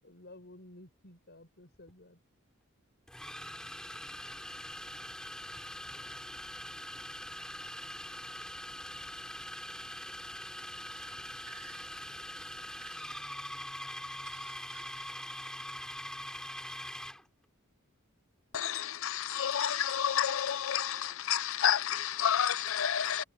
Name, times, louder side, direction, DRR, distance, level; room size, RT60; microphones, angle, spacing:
voice 1, 0.0-2.2, left 1 dB, 55° left, 7.3 m, -53 dB
sound 1, 1.7-1.9 3.1-17.2, left 1 dB, 5° left, 3.7 m, -43 dB
voice 2, 10.9-12.0 12.4-13.4 14.3-15.1, right 8 dB, 80° right, 1.7 m, -58 dB
voice 3, 18.5-23.2, left 9 dB, 70° left, 0.7 m, -30 dB
head